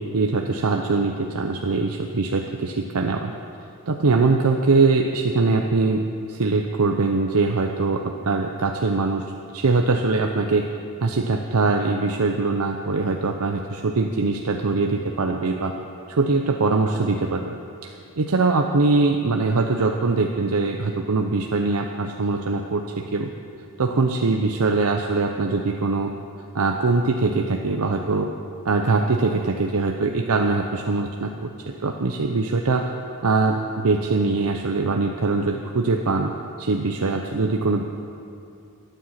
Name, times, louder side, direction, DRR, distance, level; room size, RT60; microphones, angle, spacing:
voice 1, 0.0-3.3 3.9-9.3 9.5-10.7 11.0-15.7 16.1-17.5 17.8-22.8 23.1-23.3 23.8-26.1 26.5-28.3 28.6-32.9 33.2-37.8, right 3 dB, 85° right, 3 dB, 0.7 m, -22 dB
13.5 x 9.2 x 7.5 m, 2.6 s
head